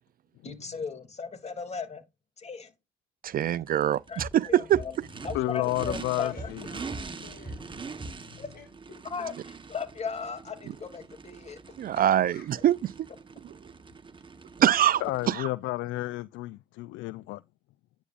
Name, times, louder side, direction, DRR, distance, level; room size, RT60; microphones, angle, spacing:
voice 1, 0.4-2.0 2.4-2.7 4.1-4.2 4.5-4.9 5.2-6.5 8.4-8.5 9.1-9.3 9.7-11.6, left 5 dB, 35° left, 2.8 m, -36 dB
voice 2, 3.2-5.1 10.6-10.8 11.8-13.1 13.4-13.6 14.6-15.5, right 11 dB, 45° right, 0.5 m, -24 dB
Race car auto racing / Idling / Accelerating revving vroom, 3.3-15.3, right 5 dB, 25° right, 1.3 m, -44 dB
sound 1, 4.2-8.7, right 1 dB, 5° right, 3.4 m, -43 dB
voice 3, 5.3-6.6 15.0-17.4, left 18 dB, 70° left, 0.5 m, -31 dB
voice 4, 6.2-7.7 8.1-9.0 11.9-12.0 12.3-12.5, left 5 dB, 50° left, 6.6 m, -52 dB
9.9 x 8.1 x 2.5 m
supercardioid pair, 85°, 20 cm